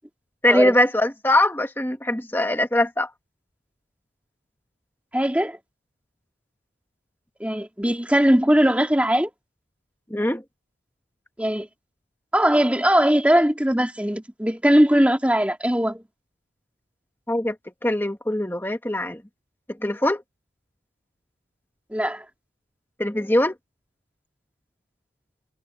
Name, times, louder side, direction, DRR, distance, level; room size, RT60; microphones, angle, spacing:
voice 1, 0.4-3.1 10.1-10.4 17.3-17.6 17.8-19.2 19.8-20.2 23.0-23.6, left 1 dB, 10° left, 1.5 m, -22 dB
voice 2, 5.1-5.6 7.4-9.3 11.4-11.7 12.3-16.0 21.9-22.2, equal, 5° right, 2.2 m, -20 dB
head